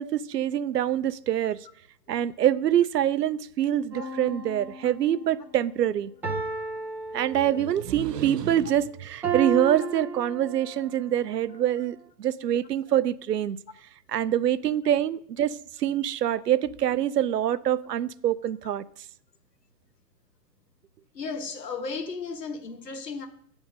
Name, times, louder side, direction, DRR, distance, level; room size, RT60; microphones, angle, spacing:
voice 1, 0.0-1.6 2.1-6.1 7.1-13.6 14.1-18.8, right 11 dB, 80° right, 0.6 m, -25 dB
sound 1, 3.9-5.2 6.2-7.9 9.2-10.9 11.6-11.7, right 4 dB, 5° right, 0.6 m, -33 dB
voice 2, 21.1-23.3, left 4 dB, 80° left, 1.2 m, -34 dB
8.3 x 3.5 x 6.4 m
hypercardioid pair, 135°, 48 cm